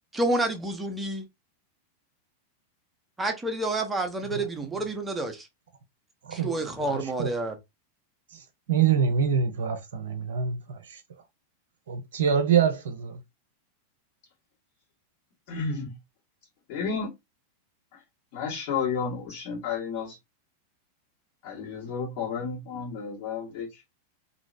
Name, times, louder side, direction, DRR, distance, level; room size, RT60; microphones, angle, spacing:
voice 1, 0.1-1.3 3.2-5.5 6.3-7.5, right 2 dB, 10° right, 0.8 m, -29 dB
voice 2, 6.9-7.3 8.7-10.8 11.9-13.1, right 7 dB, 60° right, 0.5 m, -25 dB
voice 3, 15.5-15.9 16.7-17.1 17.9-18.0 18.3-20.2 21.4-23.8, left 5 dB, 45° left, 1.5 m, -32 dB
2.9 x 2.7 x 2.5 m
figure-of-eight pair, 90°, 0 cm